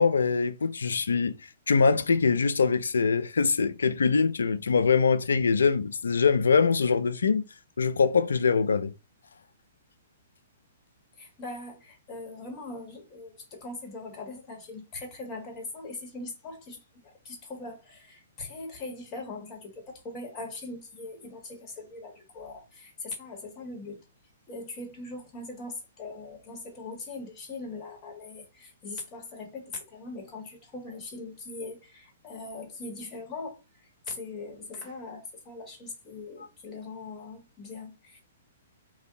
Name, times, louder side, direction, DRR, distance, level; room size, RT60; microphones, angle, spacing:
voice 1, 0.0-1.4 1.7-7.4 7.8-8.9, left 5 dB, 80° left, 0.3 m, -23 dB
voice 2, 11.2-16.8 17.2-24.0 24.5-38.2, left 3 dB, 30° left, 1.3 m, -41 dB
2.6 x 2.1 x 3.6 m
hypercardioid pair, 125°, 0 cm